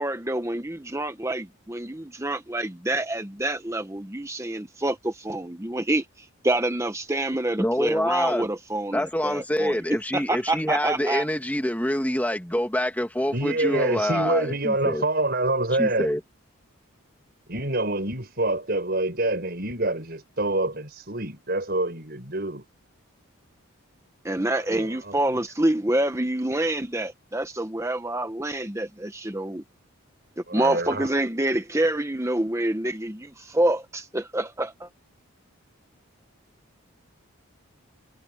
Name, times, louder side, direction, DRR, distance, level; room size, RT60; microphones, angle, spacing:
voice 1, 0.0-9.8 10.1-11.2 24.2-29.6 30.5-34.9, right 1 dB, 15° right, 1.0 m, -27 dB
voice 2, 7.6-8.5 8.9-15.0 15.8-16.2, equal, 5° left, 2.4 m, -26 dB
voice 3, 13.3-16.1 17.5-22.7 24.7-25.4 30.5-31.1, right 2 dB, 45° right, 7.0 m, -26 dB
head